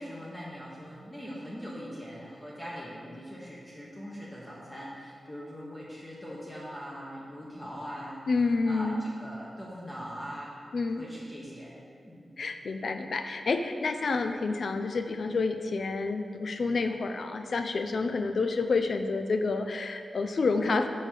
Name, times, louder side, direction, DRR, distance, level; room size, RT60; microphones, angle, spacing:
voice 1, 0.0-8.2 8.6-10.6 11.0-11.7 12.0-12.3, equal, 10° left, -6 dB, 0.8 m, -41 dB
voice 2, 8.3-9.0 10.7-11.0 12.4-20.9, left 3 dB, 60° left, 7 dB, 0.4 m, -29 dB
6.3 x 3.3 x 5.8 m, 2.3 s
wide cardioid pair, 145°, 0 cm